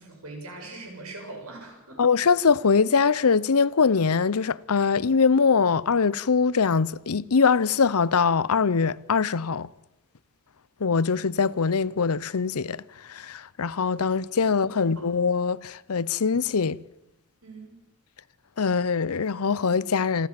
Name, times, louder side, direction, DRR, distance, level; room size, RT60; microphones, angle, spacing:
voice 1, 0.0-2.0 14.5-15.0 17.4-17.8, right 2 dB, 80° right, 7.4 m, -42 dB
voice 2, 2.0-9.7 10.8-16.8 18.6-20.3, left 5 dB, 85° left, 0.7 m, -23 dB
27.5 x 13.0 x 7.6 m
head